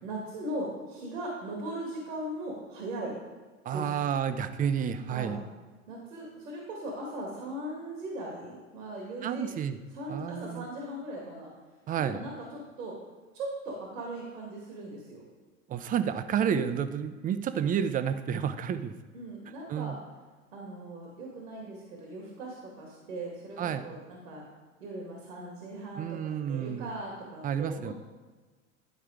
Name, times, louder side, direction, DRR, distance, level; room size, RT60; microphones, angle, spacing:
voice 1, 0.0-3.2 3.7-3.9 5.1-5.4 5.9-9.5 9.9-11.5 12.0-13.0 13.3-15.2 19.1-20.0 20.5-24.4 24.8-27.9, right 1 dB, 85° right, -1 dB, 2.2 m, -39 dB
voice 2, 3.6-5.4 9.2-9.8 10.1-10.7 11.9-12.2 15.7-18.9 19.7-20.0 23.6-23.8 26.0-26.9 27.4-27.9, right 8 dB, 20° right, 11 dB, 0.5 m, -30 dB
11.0 x 4.5 x 4.9 m, 1.3 s
hypercardioid pair, 100°, 40 cm